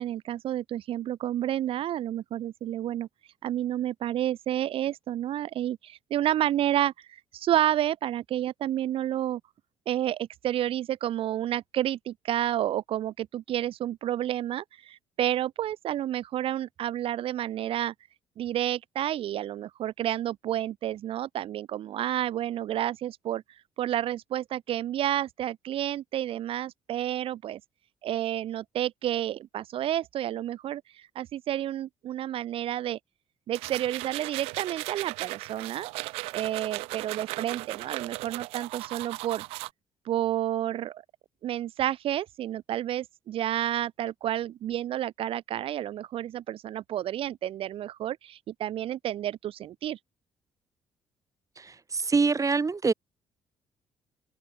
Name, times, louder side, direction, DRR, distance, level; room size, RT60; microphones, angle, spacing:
voice 1, 0.0-3.1 3.4-9.4 9.9-17.9 18.4-23.4 23.8-27.6 28.0-33.0 33.5-35.9 36.3-39.4 40.0-41.0 41.4-50.0, right 12 dB, 65° right, 1.3 m, -30 dB
sound 1, 33.5-39.7, right 23 dB, 85° right, 1.6 m, -37 dB
voice 2, 51.6-52.9, right 4 dB, 35° right, 2.8 m, -25 dB
hypercardioid pair, 50°, 10 cm